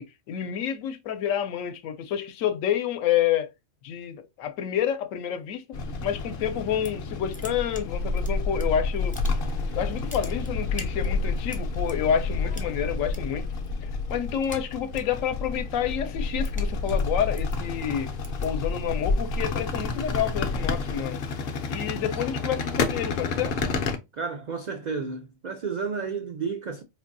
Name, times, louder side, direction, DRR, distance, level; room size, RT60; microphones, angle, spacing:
voice 1, 0.0-3.5 3.8-5.6 6.0-9.1 9.7-13.5 13.8-18.1 18.4-21.2 21.7-23.6, left 9 dB, 80° left, 1.0 m, -28 dB
sound 1, 5.7-24.0, left 3 dB, 55° left, 0.7 m, -30 dB
sound 2, 6.6-7.1 7.3-8.6 9.0-9.6 9.9-11.9 12.5-13.2 13.5-13.8 14.1-15.2 15.6-20.1, left 3 dB, 10° left, 0.3 m, -34 dB
voice 2, 24.1-26.8, right 5 dB, 85° right, 0.3 m, -32 dB
4.1 x 2.6 x 2.5 m
omnidirectional pair, 1.4 m